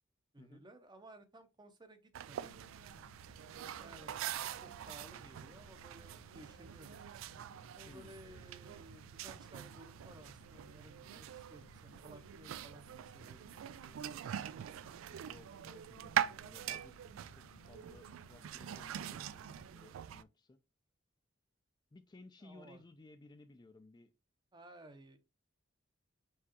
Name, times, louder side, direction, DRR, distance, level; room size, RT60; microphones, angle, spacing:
voice 1, 0.3-2.6 3.8-7.0 7.8-12.8 13.1-14.9 22.4-22.8 24.5-25.2, right 1 dB, 20° right, 0.6 m, -57 dB
sound 1, 2.1-20.2, right 10 dB, 90° right, 0.3 m, -43 dB
sound 2, 2.4-19.7, left 4 dB, 85° left, 0.4 m, -62 dB
voice 2, 15.1-17.0 17.3-19.4 19.7-20.6 21.9-24.1, left 2 dB, 20° left, 0.4 m, -58 dB
4.7 x 3.4 x 2.9 m
head